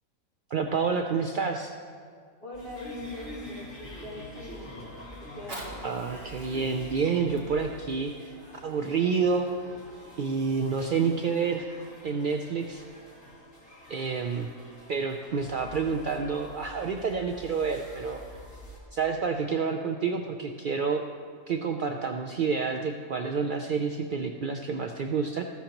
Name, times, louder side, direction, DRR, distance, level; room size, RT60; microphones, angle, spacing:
voice 1, 0.5-1.8 5.8-8.4 8.6-9.5 10.2-11.7 12.0-12.8 13.9-14.5 14.9-18.2 18.9-21.0 21.5-25.4, right 5 dB, 75° right, 4 dB, 0.4 m, -28 dB
voice 2, 2.4-4.9 5.3-5.8, left 1 dB, 30° left, -8 dB, 3.5 m, -42 dB
sound 1, 2.5-18.8, left 1 dB, 60° left, 3.0 m, -46 dB
Fire, 5.2-10.2 10.8-10.9, right 1 dB, 45° right, 2.1 m, -47 dB
14.5 x 12.5 x 2.9 m, 2.1 s
omnidirectional pair, 1.5 m